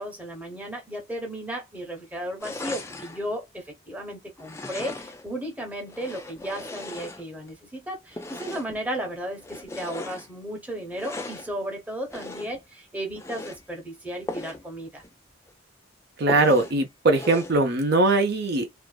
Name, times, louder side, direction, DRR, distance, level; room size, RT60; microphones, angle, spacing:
voice 1, 0.0-15.0, right 1 dB, 10° right, 0.8 m, -34 dB
sound 1, 2.4-3.2 4.4-5.3 5.9-7.5 8.1-8.8 9.4-10.3 10.9-11.5 12.1-12.6 13.1-13.6 14.3-14.6 15.0-15.1 15.5-15.6 16.3-16.8 17.1-17.6, left 2 dB, 15° left, 0.3 m, -37 dB
voice 2, 16.2-18.8, right 2 dB, 50° right, 0.6 m, -21 dB
2.5 x 2.3 x 2.2 m
head